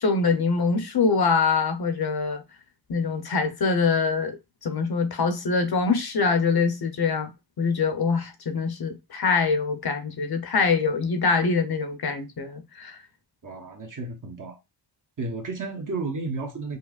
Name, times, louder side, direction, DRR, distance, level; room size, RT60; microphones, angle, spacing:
voice 1, 0.0-2.4 2.9-4.4 4.6-7.3 7.6-13.0, left 4 dB, 60° left, 0.8 m, -24 dB
voice 2, 13.4-14.6 15.2-16.8, right 3 dB, 45° right, 1.0 m, -32 dB
5.3 x 2.0 x 2.4 m
wide cardioid pair, 135°, 43 cm